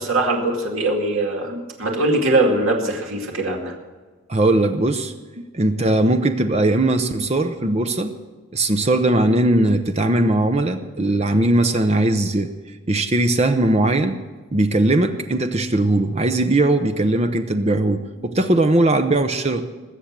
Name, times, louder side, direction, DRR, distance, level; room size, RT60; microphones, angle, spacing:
voice 1, 0.0-3.7, right 2 dB, 70° right, 0 dB, 2.3 m, -21 dB
voice 2, 4.3-5.1 5.5-8.1 8.5-12.5 12.9-14.2 14.5-19.7, right 2 dB, 30° right, 7 dB, 0.7 m, -19 dB
20.0 x 7.8 x 7.4 m, 1.3 s
head